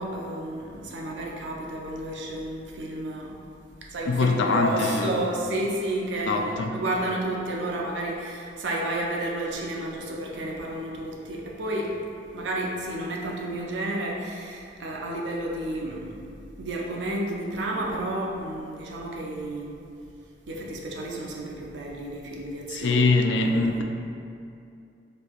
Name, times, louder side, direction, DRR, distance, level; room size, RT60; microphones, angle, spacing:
voice 1, 0.0-3.5 3.8-11.9 12.3-16.2 16.6-19.7 20.5-23.8, right 1 dB, 90° right, -1 dB, 0.5 m, -31 dB
voice 2, 4.1-5.1 6.3-6.7 22.7-23.8, left 3 dB, 85° left, 4 dB, 0.3 m, -23 dB
4.2 x 2.6 x 2.4 m, 2.5 s
head